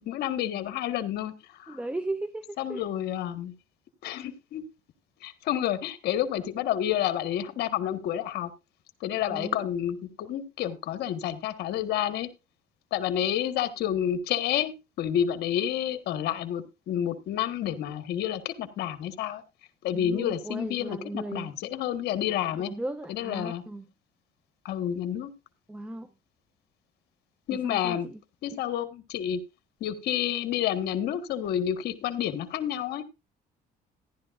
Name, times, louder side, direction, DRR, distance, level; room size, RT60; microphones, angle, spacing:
voice 1, 0.0-1.3 1.6-1.8 2.6-3.5 4.0-4.6 5.2-8.5 9.0-12.3 12.9-19.4 19.8-22.7 23.1-23.6 24.6-25.3 27.5-28.1 28.4-29.4 29.8-33.0, left 10 dB, 75° left, 1.5 m, -29 dB
voice 2, 1.7-2.9 9.3-9.6 19.9-21.5 22.1-22.3 22.7-23.9 25.7-26.1 27.6-28.2 28.5-28.6, right 2 dB, 5° right, 0.7 m, -36 dB
14.0 x 11.0 x 2.5 m
cardioid pair, 110°, 17 cm